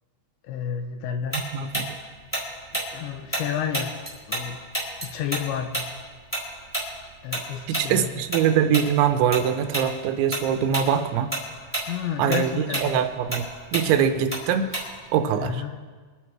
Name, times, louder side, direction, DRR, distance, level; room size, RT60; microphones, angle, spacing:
voice 1, 0.4-1.4 2.9-3.9 4.3-4.6 5.0-5.8 7.2-8.2 11.9-13.0 15.4-15.7, left 8 dB, 80° left, 6 dB, 3.1 m, -30 dB
Tick-tock, 1.3-4.5 4.7-9.4 9.7-9.9 10.3-10.9 11.2-15.1, right 1 dB, 5° left, 3.8 m, -30 dB
voice 2, 1.3-1.9 7.7-11.3 12.2-13.4 13.7-14.7 15.1-15.6, right 8 dB, 80° right, 8 dB, 3.1 m, -23 dB
24.5 x 9.2 x 4.8 m, 1.5 s
omnidirectional pair, 5.4 m